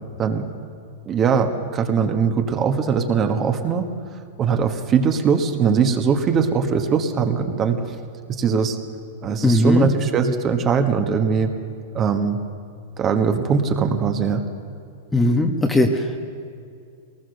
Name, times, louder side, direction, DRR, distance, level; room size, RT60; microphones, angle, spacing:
voice 1, 1.1-3.9 4.4-7.8 8.4-8.8 9.2-11.5 11.9-12.4 13.0-14.4, right 6 dB, 25° right, 6 dB, 1.5 m, -21 dB
voice 2, 9.4-9.9 15.1-16.2, left 1 dB, 5° left, 4 dB, 1.2 m, -18 dB
22.0 x 19.5 x 6.7 m, 2.4 s
supercardioid pair, 145°, 0 cm